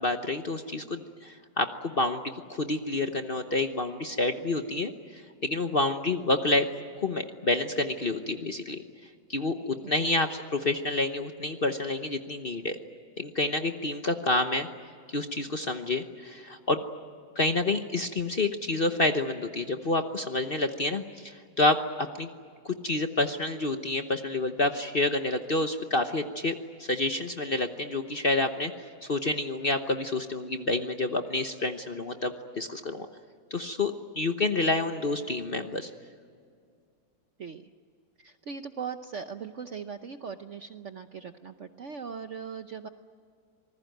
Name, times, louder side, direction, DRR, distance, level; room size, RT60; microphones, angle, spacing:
voice 1, 0.0-2.2 2.5-6.7 7.0-8.8 9.3-12.8 13.2-14.7 15.1-16.8 17.4-21.8 22.2-22.3 22.6-33.1 33.5-35.9, left 2 dB, 40° left, 7 dB, 0.9 m, -28 dB
voice 2, 9.8-10.1 37.4-37.7 38.2-42.9, right 6 dB, 55° right, 8 dB, 0.9 m, -39 dB
26.5 x 20.0 x 9.2 m, 2.2 s
omnidirectional pair, 2.0 m